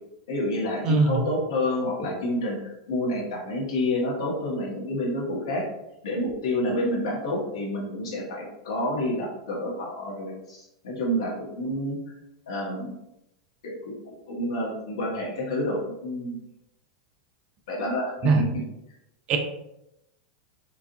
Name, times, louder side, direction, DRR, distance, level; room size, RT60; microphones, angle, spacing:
voice 1, 0.3-5.7 6.0-12.0 12.5-12.9 13.6-16.4 17.7-18.5, left 1 dB, 70° left, -2 dB, 1.3 m, -29 dB
voice 2, 0.8-1.2 18.2-18.4 19.3-19.4, right 4 dB, 40° right, 4 dB, 0.6 m, -20 dB
4.6 x 2.6 x 2.6 m, 0.86 s
hypercardioid pair, 95°, 3 cm